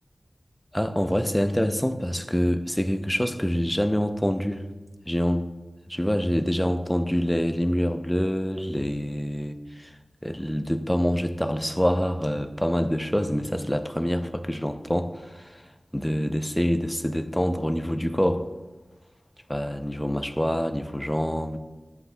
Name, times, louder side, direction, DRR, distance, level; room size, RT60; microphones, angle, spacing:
voice 1, 0.7-4.6 5.1-5.5 5.9-9.9 10.2-15.6 15.9-18.5 19.5-21.6, equal, 5° left, 8 dB, 0.5 m, -26 dB
13.5 x 8.3 x 2.2 m, 1.2 s
wide cardioid pair, 70°, 0 cm